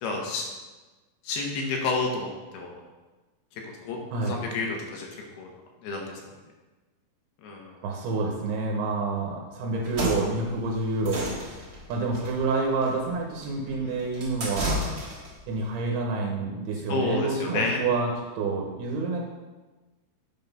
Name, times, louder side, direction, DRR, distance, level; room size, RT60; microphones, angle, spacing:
voice 1, 0.0-0.4 1.3-2.3 2.5-2.8 3.8-4.0 4.3-5.1 5.4-5.5 5.8-6.2 7.4-7.8 13.6-13.9 16.9-17.8, left 3 dB, 80° left, 0 dB, 2.9 m, -29 dB
voice 2, 4.1-4.4 7.8-11.6 11.9-14.9 15.5-19.2, right 3 dB, 85° right, 0 dB, 2.8 m, -28 dB
sound 1, 9.7-15.4, equal, 50° right, 1.6 m, -33 dB
7.6 x 3.9 x 5.3 m, 1.2 s
omnidirectional pair, 4.5 m